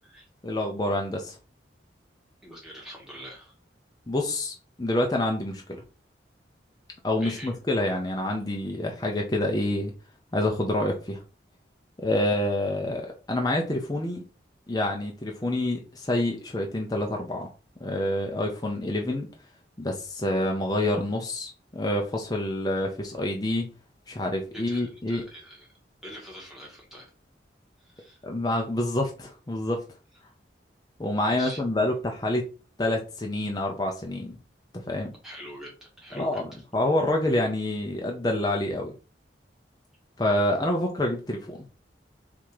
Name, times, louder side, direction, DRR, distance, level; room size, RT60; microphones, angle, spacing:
voice 1, 0.4-1.4 4.1-5.8 7.0-9.9 10.3-11.2 12.0-14.2 14.7-17.5 17.8-19.3 19.8-23.7 24.1-25.2 28.2-29.8 31.0-32.4 32.8-34.4 34.7-35.1 36.1-36.5 36.7-38.9 40.2-41.6, left 1 dB, 20° left, 1 dB, 0.6 m, -27 dB
voice 2, 2.4-3.5 7.2-7.5 24.5-25.7 26.0-27.1 27.8-28.2 31.2-31.6 35.2-36.6, equal, ahead, -2 dB, 1.5 m, -44 dB
3.7 x 2.9 x 4.7 m, 0.34 s
head